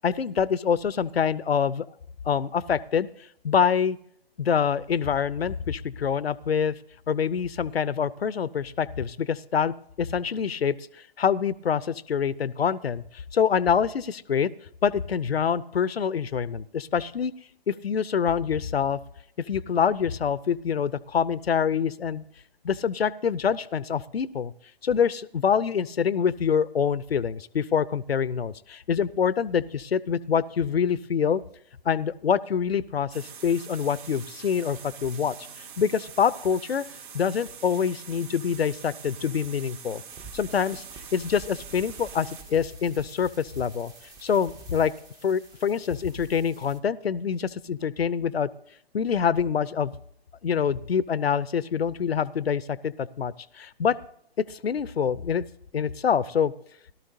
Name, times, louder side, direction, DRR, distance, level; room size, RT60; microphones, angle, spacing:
voice 1, 0.0-1.9 2.3-3.1 3.4-4.0 4.4-6.7 7.1-10.7 11.2-13.0 13.3-14.5 14.8-17.3 17.7-19.0 19.4-22.2 22.6-24.5 24.8-31.4 31.9-35.4 35.8-36.8 37.1-40.0 40.3-40.8 41.1-43.9 44.2-44.9 45.2-48.5 48.9-49.9 50.4-54.0 54.5-55.4 55.7-56.5, left 7 dB, 80° left, 19 dB, 0.6 m, -25 dB
sound 1, 33.1-42.4, right 7 dB, 55° right, 2.4 m, -44 dB
sound 2, 40.1-46.8, right 3 dB, 10° right, 0.6 m, -48 dB
18.0 x 12.5 x 2.6 m, 0.67 s
figure-of-eight pair, 130°, 30 cm